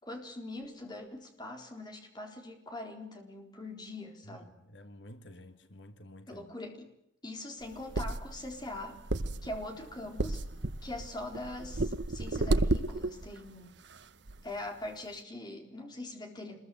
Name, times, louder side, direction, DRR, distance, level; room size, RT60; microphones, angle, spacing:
voice 1, 0.0-4.5 6.3-6.9 7.2-9.0 9.4-10.5 10.8-13.8 14.4-16.6, left 2 dB, 20° left, 4.1 m, -42 dB
voice 2, 4.3-6.5, left 1 dB, 65° left, 1.5 m, -51 dB
sound 1, 7.6-13.4 13.9-14.0 14.3-14.4, right 2 dB, 60° right, 1.0 m, -32 dB
27.0 x 21.5 x 8.0 m
head